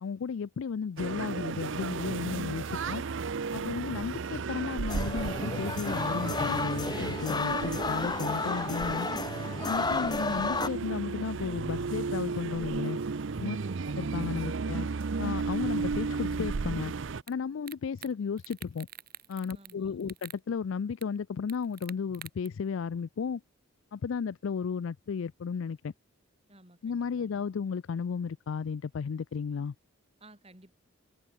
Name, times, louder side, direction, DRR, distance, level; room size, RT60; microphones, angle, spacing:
voice 1, 0.0-3.0 3.5-9.1 9.6-13.0 13.4-13.6 14.0-14.9 15.2-16.9 17.3-18.9 19.3-23.4 23.9-25.9 26.8-29.7, left 6 dB, 65° left, 0.4 m, -34 dB
sound 1, 1.0-17.2, right 4 dB, 60° right, 0.6 m, -34 dB
sound 2, 4.9-10.7, left 3 dB, 20° left, 1.5 m, -32 dB
voice 2, 13.6-13.9 19.5-20.2 26.5-27.5 30.2-30.8, right 1 dB, 30° right, 5.7 m, -56 dB
sound 3, 17.3-17.4 17.7-18.1 18.4-19.7 20.0-20.4 21.0-21.1 21.5-22.5, right 11 dB, 45° right, 7.8 m, -46 dB
head